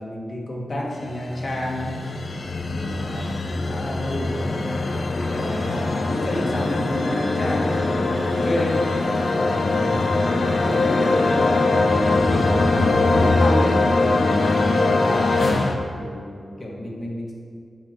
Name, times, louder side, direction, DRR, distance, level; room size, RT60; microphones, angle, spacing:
voice 1, 0.0-2.1 2.7-4.7 5.3-8.8 9.4-15.4 16.0-17.3, left 1 dB, 40° left, -3 dB, 1.7 m, -30 dB
sound 1, 1.0-15.8, left 2 dB, 60° left, 0.7 m, -22 dB
8.8 x 6.6 x 3.8 m, 2.3 s
wide cardioid pair, 100°, 0 cm